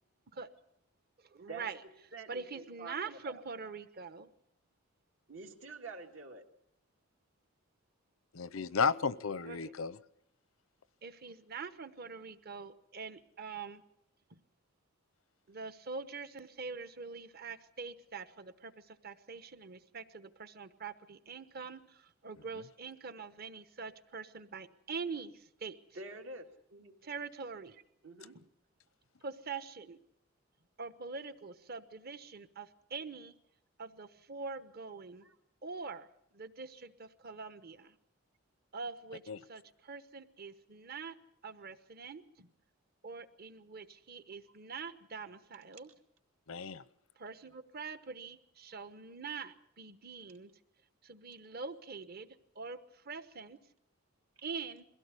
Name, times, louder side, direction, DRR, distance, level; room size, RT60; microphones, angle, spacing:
voice 1, 1.2-1.8 2.3-4.3 9.5-9.6 11.0-13.8 14.3-14.4 15.5-25.8 27.0-27.8 28.3-28.4 29.2-30.0 30.8-33.3 33.8-35.2 35.6-36.1 36.3-37.9 38.7-39.2 39.5-41.2 41.4-42.5 43.0-45.9 47.2-50.5 51.0-53.6 54.4-54.8, right 4 dB, 50° right, 12 dB, 1.1 m, -44 dB
voice 2, 2.1-3.4 5.3-6.4 25.9-26.9 28.0-28.4 35.2-35.4, right 3 dB, 70° right, 3 dB, 2.4 m, -47 dB
voice 3, 8.3-10.0 39.3-39.4 46.5-46.8, left 5 dB, 85° left, 17 dB, 0.8 m, -33 dB
22.5 x 16.5 x 8.3 m, 0.77 s
head